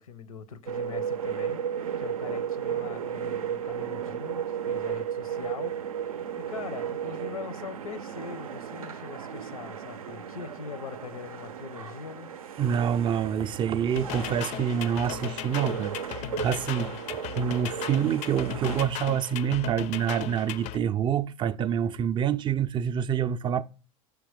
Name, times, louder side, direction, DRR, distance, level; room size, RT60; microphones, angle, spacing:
voice 1, 0.0-1.6 2.0-12.3, left 6 dB, 85° left, 0.6 m, -42 dB
sound 1, 0.7-18.9, right 8 dB, 85° right, 0.5 m, -35 dB
voice 2, 12.6-16.9 17.4-23.6, right 8 dB, 25° right, 0.4 m, -27 dB
sound 2, 14.0-20.8, left 12 dB, 40° left, 0.4 m, -37 dB
6.0 x 3.4 x 4.9 m
hypercardioid pair, 85°, 18 cm